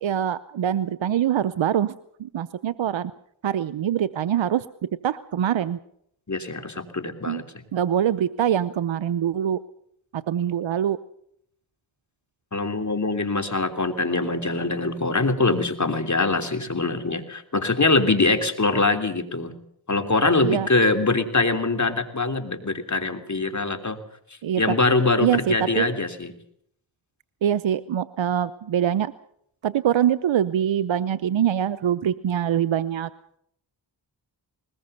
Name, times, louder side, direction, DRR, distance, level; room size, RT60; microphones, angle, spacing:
voice 1, 0.0-1.9 2.2-3.1 3.4-4.6 5.0-5.8 7.3-7.4 7.7-9.6 10.1-11.0 20.4-20.7 24.4-24.7 25.2-25.9 27.4-29.1 29.6-33.1, right 10 dB, 80° right, 14 dB, 0.8 m, -24 dB
voice 2, 6.3-7.5 12.5-19.5 19.9-24.0 24.6-26.3, left 3 dB, 40° left, 7 dB, 3.2 m, -23 dB
20.5 x 20.0 x 6.8 m, 0.71 s
cardioid pair, 40°, 45 cm